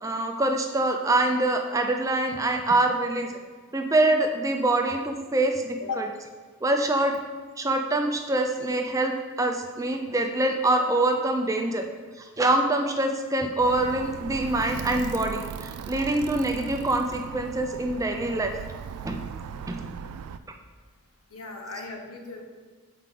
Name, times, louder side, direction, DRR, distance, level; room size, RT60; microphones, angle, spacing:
voice 1, 0.0-3.4 3.7-6.1 6.6-7.2 7.6-11.8 12.2-18.5 19.0-19.2 19.7-19.9, right 2 dB, 15° right, 4 dB, 0.4 m, -25 dB
Alarm, 13.6-20.4, right 7 dB, 85° right, 0.3 m, -37 dB
voice 2, 21.3-22.4, left 3 dB, 75° left, 2 dB, 1.0 m, -36 dB
7.5 x 4.7 x 3.7 m, 1.5 s
head